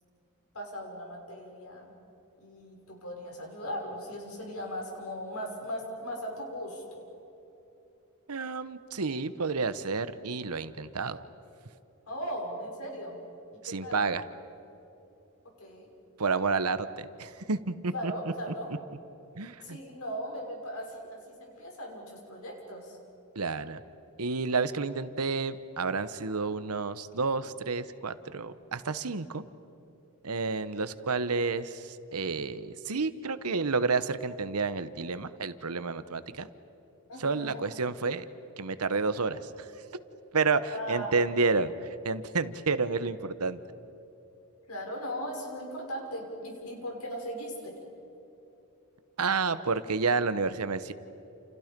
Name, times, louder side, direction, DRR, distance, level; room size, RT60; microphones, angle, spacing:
voice 1, 0.5-1.9 2.4-7.1 12.1-13.2 13.5-14.0 15.6-15.9 17.9-18.7 19.6-23.0 37.1-37.7 40.7-41.1 44.7-47.8, equal, 75° left, 1 dB, 5.9 m, -38 dB
voice 2, 8.3-11.2 13.6-14.2 16.2-18.1 19.3-19.8 23.3-23.8 24.2-29.4 30.2-36.5 37.2-38.2 38.6-39.7 40.3-43.6 49.2-50.9, right 4 dB, 85° right, 13 dB, 1.1 m, -30 dB
30.0 x 29.0 x 5.3 m, 3.0 s
head